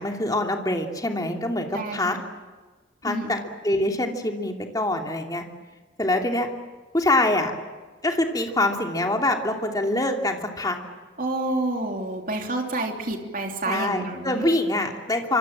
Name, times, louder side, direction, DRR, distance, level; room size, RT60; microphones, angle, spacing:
voice 1, 0.0-2.2 3.0-3.4 3.6-5.4 6.0-6.5 6.9-7.5 8.0-10.8 13.7-15.4, left 1 dB, 20° left, 3 dB, 2.8 m, -24 dB
voice 2, 1.7-2.1 3.1-3.3 11.2-14.5, right 2 dB, 45° right, 3 dB, 3.1 m, -29 dB
27.0 x 25.5 x 7.5 m, 1.3 s
head